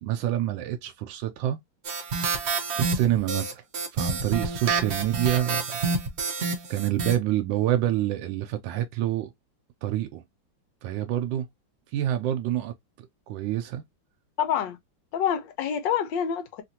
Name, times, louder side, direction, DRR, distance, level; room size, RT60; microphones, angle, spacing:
voice 1, 0.0-1.6 2.8-3.6 3.9-5.8 6.7-9.3 9.8-10.2 10.8-11.5 11.9-12.7 13.3-13.8, right 12 dB, 90° right, 1.3 m, -27 dB
sound 1, 1.8-7.2, right 4 dB, 65° right, 0.6 m, -28 dB
voice 2, 14.4-14.8 15.1-16.6, left 8 dB, 85° left, 1.4 m, -27 dB
3.3 x 2.5 x 2.7 m
omnidirectional pair, 2.0 m